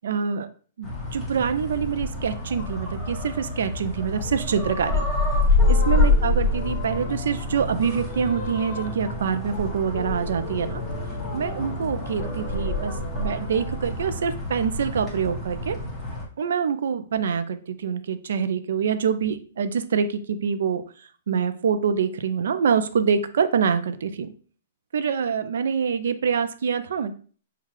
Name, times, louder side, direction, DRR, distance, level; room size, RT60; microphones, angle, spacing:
voice 1, 0.0-0.5 0.8-5.1 5.7-10.8 11.3-15.8 16.4-20.8 21.3-24.3 24.9-27.2, right 6 dB, 75° right, 11 dB, 0.4 m, -25 dB
sound 1, 0.8-16.2, left 2 dB, 5° right, 1.0 m, -27 dB
Piano, 5.6-14.3, left 5 dB, 35° left, 0.7 m, -41 dB
5.6 x 2.3 x 3.0 m, 0.42 s
hypercardioid pair, 160°, 0 cm